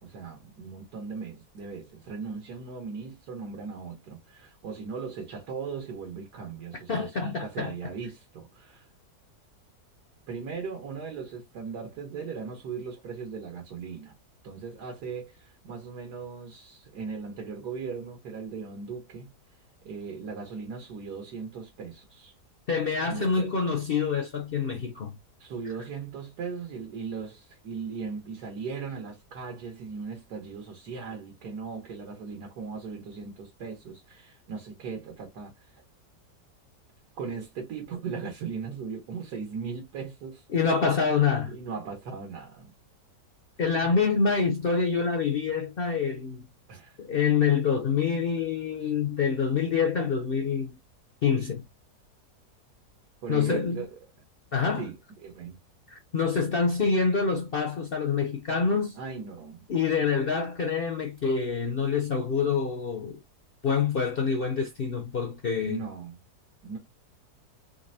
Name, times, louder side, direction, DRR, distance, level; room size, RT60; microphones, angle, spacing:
voice 1, 0.0-8.9 10.3-14.1 14.4-19.3 19.8-22.3 23.1-23.5 25.4-35.8 37.2-40.4 41.4-42.7 43.7-43.9 46.7-47.0 48.8-48.9 53.2-54.0 54.8-55.6 58.9-59.6 65.6-66.2 66.6-66.8, right 5 dB, 80° right, 1.7 m, -38 dB
voice 2, 6.9-7.7 22.7-25.2 40.5-41.5 43.6-46.5 47.0-50.7 51.2-51.6 53.3-53.8 54.5-54.8 55.9-59.0 59.7-63.2 63.6-65.9, left 5 dB, 60° left, 0.6 m, -26 dB
3.9 x 3.3 x 2.6 m
omnidirectional pair, 1.7 m